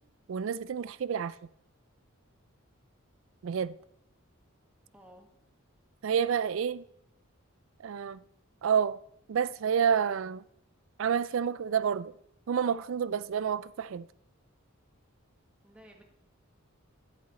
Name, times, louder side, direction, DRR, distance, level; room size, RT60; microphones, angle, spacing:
voice 1, 0.3-1.4 3.4-3.7 6.0-6.8 7.8-8.2 8.6-9.0 9.3-10.4 11.0-12.1 12.5-14.1, right 7 dB, 65° right, 0.4 m, -29 dB
voice 2, 4.9-5.3 15.6-16.0, equal, 5° right, 1.4 m, -54 dB
11.0 x 8.1 x 4.2 m
head